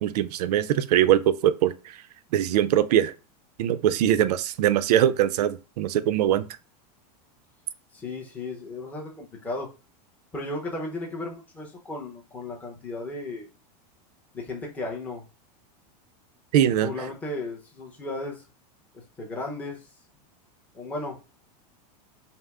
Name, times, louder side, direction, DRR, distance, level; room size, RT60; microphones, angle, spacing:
voice 1, 0.0-1.7 2.3-3.1 3.6-6.5 16.5-16.9, right 11 dB, 75° right, 0.5 m, -22 dB
voice 2, 3.9-4.3 7.9-9.7 10.3-13.5 14.3-15.2 16.8-18.4 18.9-19.9 20.7-21.2, left 2 dB, 10° left, 0.7 m, -35 dB
5.4 x 2.0 x 3.5 m
supercardioid pair, 175°, 20 cm